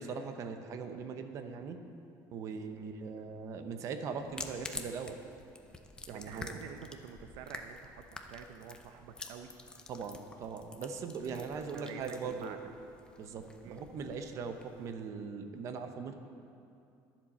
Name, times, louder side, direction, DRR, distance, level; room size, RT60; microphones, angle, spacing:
voice 1, 0.0-1.8 2.3-5.2 6.1-6.5 9.9-12.6 13.2-16.1, right 5 dB, 40° right, 7 dB, 0.9 m, -40 dB
sound 1, 4.2-14.9, left 3 dB, 10° left, 0.6 m, -49 dB
voice 2, 6.1-9.5 11.2-12.6 13.6-13.8, right 7 dB, 75° right, 7 dB, 0.7 m, -48 dB
22.0 x 7.5 x 4.3 m, 2.6 s
cardioid pair, 165°, 8 cm